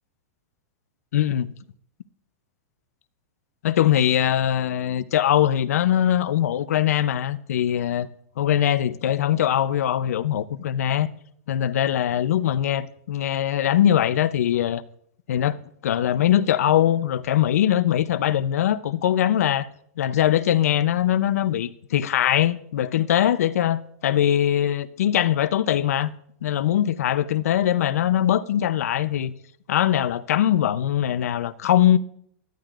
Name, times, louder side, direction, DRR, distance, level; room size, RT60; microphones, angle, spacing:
voice 1, 1.1-1.5 3.6-8.1 8.4-11.1 11.5-14.8 15.3-19.7 20.0-26.1 26.4-29.3 29.7-32.0, left 11 dB, 85° left, 0.6 m, -21 dB
16.5 x 12.0 x 2.5 m
supercardioid pair, 165°, 8 cm